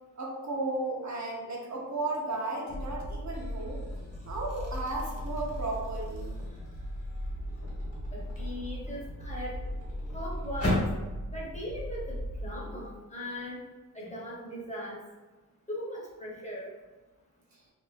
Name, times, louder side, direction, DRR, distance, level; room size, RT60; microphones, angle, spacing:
voice 1, 0.2-3.8 4.2-6.4 17.5-17.6, right 2 dB, 55° right, -3 dB, 0.7 m, -34 dB
sound 1, 2.1-2.5 3.0-11.0, left 1 dB, 45° left, 1.0 m, -38 dB
sound 2, 2.7-12.6, equal, 75° left, 0.6 m, -38 dB
voice 2, 8.1-9.6 10.1-10.8 11.3-13.6 13.9-15.0 15.7-16.7, equal, 20° left, -5 dB, 0.8 m, -39 dB
2.6 x 2.3 x 3.2 m, 1.2 s
wide cardioid pair, 95°, 33 cm